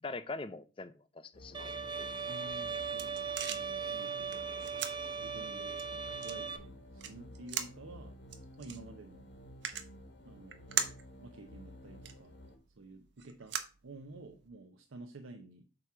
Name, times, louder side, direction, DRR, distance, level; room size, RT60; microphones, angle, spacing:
voice 1, 0.0-2.1, left 3 dB, 25° left, 0.5 m, -43 dB
sound 1, 1.3-12.6, left 1 dB, 60° left, 1.2 m, -53 dB
Bowed string instrument, 1.5-6.6, right 5 dB, 25° right, 0.6 m, -38 dB
voice 2, 2.3-4.7 5.2-8.1 8.6-9.3 10.2-12.4 12.8-13.6 13.8-15.6, right 2 dB, 90° right, 0.7 m, -51 dB
sound 2, 2.4-14.5, right 8 dB, 60° right, 0.8 m, -43 dB
7.8 x 2.9 x 5.9 m
head